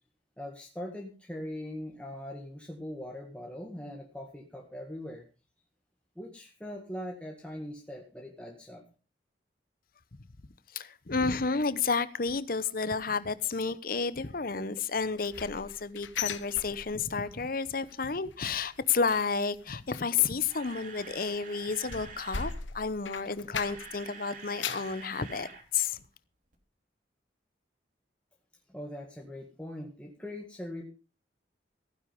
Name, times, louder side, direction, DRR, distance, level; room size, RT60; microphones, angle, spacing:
voice 1, 0.4-5.3 6.2-8.8 28.7-30.9, left 1 dB, 5° left, 1.9 m, -41 dB
voice 2, 10.7-25.5 25.7-26.0, left 5 dB, 50° left, 0.9 m, -31 dB
sound 1, 15.0-17.3 17.6-18.0 18.2-24.0 24.4-25.0 25.5-25.6 26.0-26.1, left 7 dB, 85° left, 1.1 m, -40 dB
Camera, 20.5-22.6 23.4-25.6 25.9-26.1 26.5-26.6, right 4 dB, 45° right, 3.1 m, -47 dB
15.5 x 10.0 x 5.4 m
head